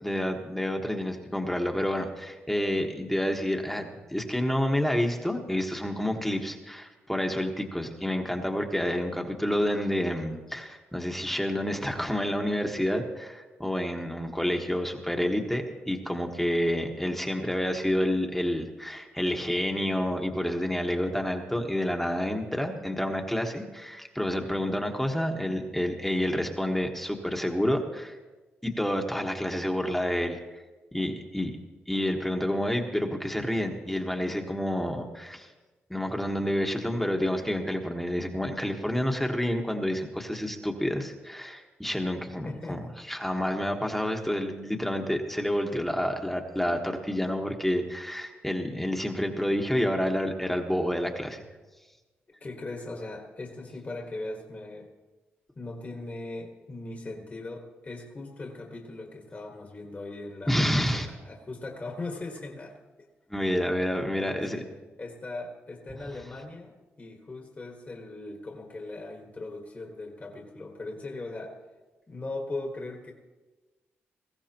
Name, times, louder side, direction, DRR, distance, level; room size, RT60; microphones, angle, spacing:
voice 1, 0.0-28.1 28.6-30.4 30.9-31.6 31.9-35.5 35.9-42.8 43.1-51.4 60.5-61.1 63.3-64.6, equal, 5° left, 2 dB, 1.4 m, -29 dB
voice 2, 42.4-42.8 52.4-54.9 55.6-63.1 64.0-71.6 72.1-73.1, left 2 dB, 35° left, 1 dB, 1.7 m, -39 dB
20.0 x 15.5 x 3.0 m, 1.2 s
cardioid pair, 70°, 5 cm